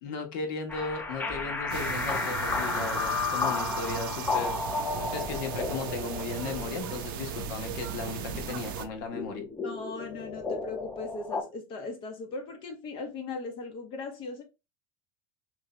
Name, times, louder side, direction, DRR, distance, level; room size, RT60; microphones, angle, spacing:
voice 1, 0.0-4.6 5.1-9.4, left 4 dB, 70° left, 1.2 m, -36 dB
sound 1, 0.7-11.4, left 4 dB, 15° left, 0.6 m, -33 dB
sound 2, 1.7-8.8, right 9 dB, 75° right, 0.6 m, -37 dB
voice 2, 9.6-14.4, left 3 dB, 50° left, 0.9 m, -38 dB
3.2 x 2.7 x 3.1 m
supercardioid pair, 110°, 11 cm